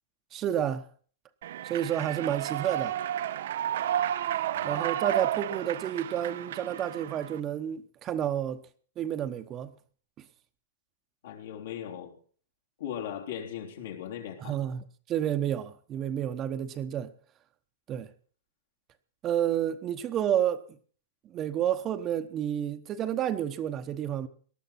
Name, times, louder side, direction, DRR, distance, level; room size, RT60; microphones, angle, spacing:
voice 1, 0.3-0.8 1.6-3.0 4.6-8.6 9.0-9.7 14.4-17.1 17.9-18.1 19.2-20.6 21.2-24.3, right 10 dB, 25° right, 1.0 m, -30 dB
Human voice / Clapping / Cheering, 1.4-7.4, right 11 dB, 65° right, 0.7 m, -32 dB
voice 2, 11.2-12.1 12.8-14.6, left 9 dB, 70° left, 3.5 m, -38 dB
19.0 x 12.5 x 4.3 m
hypercardioid pair, 150°, 0 cm